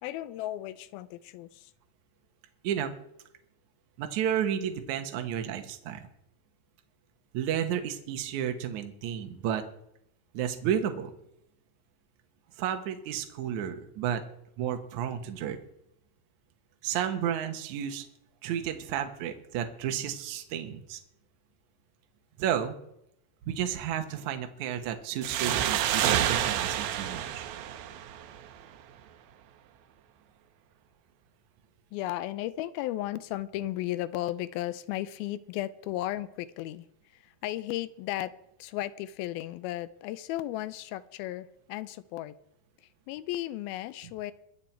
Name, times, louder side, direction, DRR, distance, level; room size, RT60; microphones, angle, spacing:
voice 1, 0.0-1.7 31.9-36.9 37.1-38.3 38.6-42.3 43.1-44.3, left 14 dB, 90° left, 16 dB, 2.5 m, -35 dB
voice 2, 4.0-6.1 7.3-9.6 10.3-11.1 12.6-14.2 14.6-15.6 16.8-18.0 18.4-21.0 22.4-22.8 23.5-27.4, right 9 dB, 65° right, 6 dB, 2.3 m, -32 dB
sound 1, 25.2-28.6, right 11 dB, 85° right, 2.8 m, -29 dB
23.0 x 7.6 x 4.4 m, 0.76 s
omnidirectional pair, 4.2 m